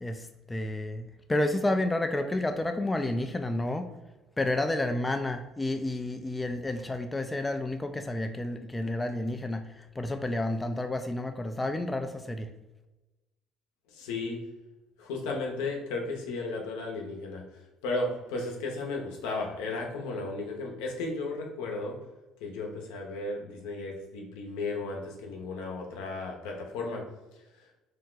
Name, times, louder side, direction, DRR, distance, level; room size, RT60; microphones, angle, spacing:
voice 1, 0.0-3.9 4.4-12.5, left 1 dB, 15° left, 6 dB, 0.3 m, -30 dB
voice 2, 13.9-14.4 15.0-22.0 22.4-27.0 27.6-27.7, left 3 dB, 85° left, 1 dB, 0.7 m, -34 dB
2.7 x 2.2 x 3.7 m, 1.1 s
supercardioid pair, 80°, 0 cm